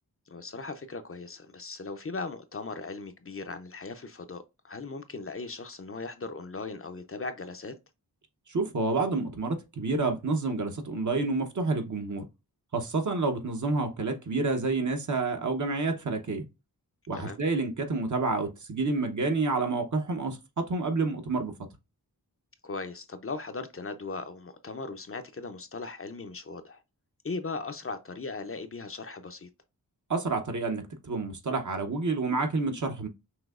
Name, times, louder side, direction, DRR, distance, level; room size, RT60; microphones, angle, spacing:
voice 1, 0.3-7.7 17.2-17.4 22.6-26.8 27.2-29.5, left 3 dB, 40° left, 0.5 m, -38 dB
voice 2, 8.5-12.3 12.7-16.5 17.1-21.5 30.1-33.1, right 3 dB, 55° right, 0.9 m, -29 dB
6.0 x 2.8 x 2.4 m
wide cardioid pair, 80°, 37 cm